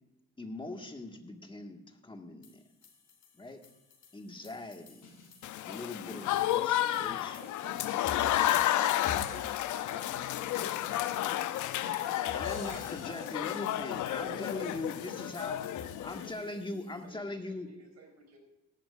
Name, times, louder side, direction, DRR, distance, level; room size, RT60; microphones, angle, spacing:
voice 1, 0.4-2.6 3.3-3.6 4.1-5.1 5.6-7.4 12.3-15.6 16.0-17.7, left 2 dB, 15° left, 4 dB, 1.7 m, -41 dB
sound 1, 2.4-17.0, left 4 dB, 55° left, 3.2 m, -50 dB
Applause / Crowd, 5.4-16.3, left 13 dB, 75° left, 0.6 m, -32 dB
voice 2, 6.1-6.7 7.1-8.6 8.9-10.5 11.0-11.1 11.7-13.6 13.9-14.1 14.6-14.8, right 4 dB, 30° right, 4 dB, 1.4 m, -55 dB
voice 3, 14.2-15.6 16.2-18.4, right 2 dB, 60° right, 2 dB, 4.1 m, -52 dB
17.5 x 11.5 x 2.5 m, 0.95 s
cardioid pair, 90°, 30 cm